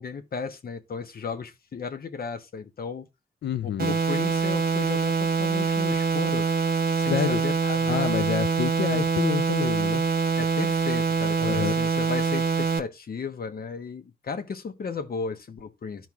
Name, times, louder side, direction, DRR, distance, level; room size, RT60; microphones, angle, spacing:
voice 1, 0.0-3.1 3.6-6.5 6.9-8.0 8.9-9.1 10.4-16.1, left 5 dB, 60° left, 1.0 m, -35 dB
voice 2, 3.4-4.0 7.1-7.4 7.9-10.0 11.4-11.8, left 9 dB, 85° left, 0.4 m, -28 dB
sound 1, 3.8-12.8, right 5 dB, 60° right, 1.2 m, -24 dB
13.0 x 4.6 x 2.3 m
cardioid pair, 75°, 17 cm